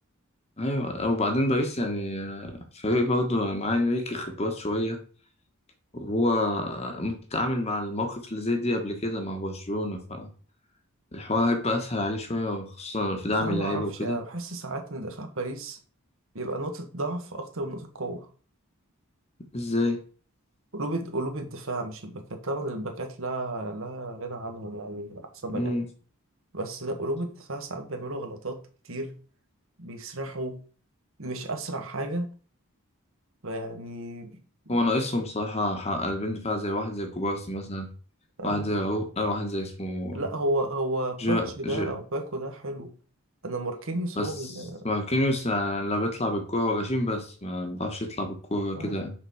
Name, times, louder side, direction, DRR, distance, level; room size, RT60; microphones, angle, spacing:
voice 1, 0.6-5.0 5.9-10.3 11.1-14.2 19.5-20.0 25.5-25.9 34.7-37.9 38.4-40.2 41.2-41.9 44.2-44.3 44.8-49.1, left 1 dB, 30° left, 5 dB, 1.2 m, -28 dB
voice 2, 13.4-15.8 16.3-18.3 20.7-25.7 26.5-28.6 28.8-29.1 29.8-30.6 31.2-32.3 33.4-34.3 34.6-34.8 38.4-38.7 40.1-42.9 43.4-44.9 48.7-49.0, right 2 dB, 65° right, 4 dB, 1.5 m, -33 dB
6.3 x 3.9 x 6.3 m, 0.39 s
head